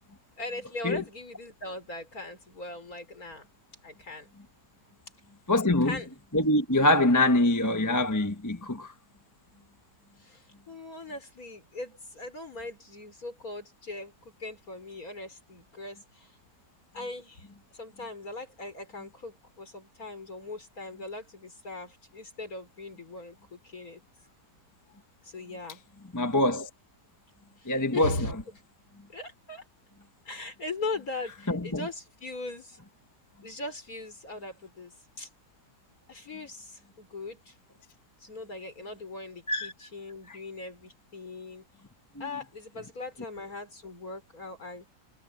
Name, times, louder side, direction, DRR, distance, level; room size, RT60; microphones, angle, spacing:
voice 1, 0.4-3.5 3.8-4.3 5.8-6.1 10.2-16.4 16.9-17.5 17.7-24.0 25.2-25.8 27.6-28.3 29.1-29.6 30.3-32.8 33.4-35.3 36.1-37.6 38.2-41.6 42.2-44.9, left 2 dB, 55° left, 5.5 m, -40 dB
voice 2, 5.5-6.0 6.3-8.9 26.1-26.7 27.7-28.1 31.5-31.8 39.5-39.7 40.3-40.4, left 1 dB, 10° left, 1.2 m, -24 dB
omnidirectional pair, 1.9 m